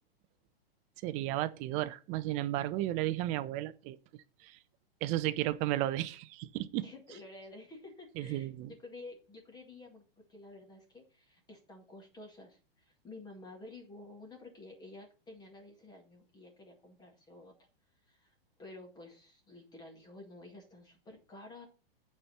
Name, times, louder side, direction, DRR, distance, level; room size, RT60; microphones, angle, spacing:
voice 1, 1.0-4.0 4.4-4.6 5.0-6.8 8.2-8.7, right 15 dB, 25° right, 0.4 m, -33 dB
voice 2, 6.8-10.0 10.3-17.5 18.0-21.7, left 2 dB, 15° left, 2.0 m, -51 dB
8.6 x 4.3 x 7.0 m
hypercardioid pair, 145°, 30 cm